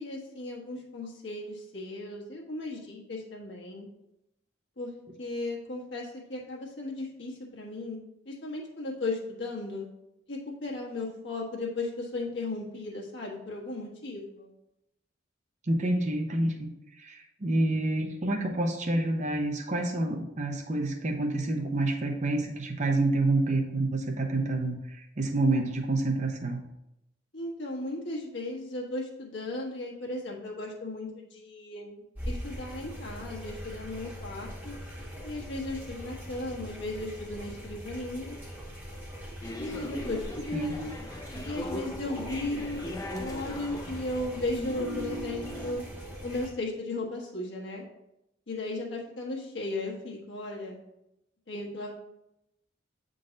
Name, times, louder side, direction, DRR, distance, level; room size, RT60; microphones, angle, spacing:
voice 1, 0.0-3.9 4.8-8.0 8.2-9.9 10.3-14.5 27.3-34.8 35.2-38.4 39.6-40.9 41.4-45.8 46.2-47.8 48.5-50.8 51.5-51.9, left 2 dB, 65° left, -2 dB, 1.4 m, -36 dB
voice 2, 15.7-16.7 17.0-26.6 40.5-40.8, right 2 dB, 35° right, 4 dB, 0.7 m, -28 dB
sound 1, 32.1-46.5, equal, 10° right, 1.5 m, -42 dB
sound 2, 39.4-45.7, left 1 dB, 15° left, 0.5 m, -39 dB
7.6 x 3.8 x 3.9 m, 0.87 s
head